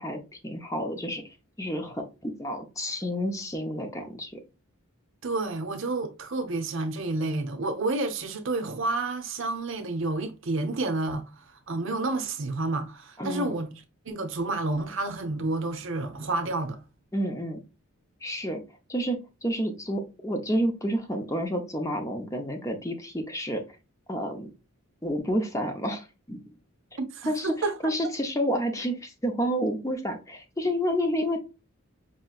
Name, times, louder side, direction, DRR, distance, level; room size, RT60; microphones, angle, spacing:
voice 1, 0.0-4.4 13.2-13.5 17.1-17.6 18.2-18.6 18.9-23.6 24.1-24.5 25.0-26.5 27.3-27.5 27.8-31.4, equal, 15° left, 0.6 m, -30 dB
voice 2, 5.2-11.2 11.7-13.7 14.1-16.8 27.0-27.9, right 2 dB, 55° right, 0.7 m, -30 dB
5.3 x 2.9 x 2.4 m
head